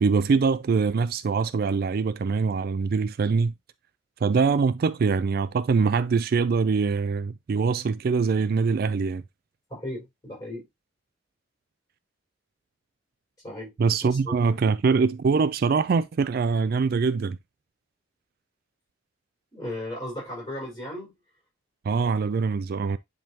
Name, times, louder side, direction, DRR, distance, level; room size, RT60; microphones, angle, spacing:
voice 1, 0.0-3.5 4.2-9.2 13.8-17.4 21.8-23.0, right 5 dB, 50° right, 0.3 m, -23 dB
voice 2, 9.7-10.7 13.4-13.7 14.0-14.6 19.5-21.1, left 1 dB, 20° left, 4.9 m, -36 dB
10.5 x 3.6 x 2.8 m
head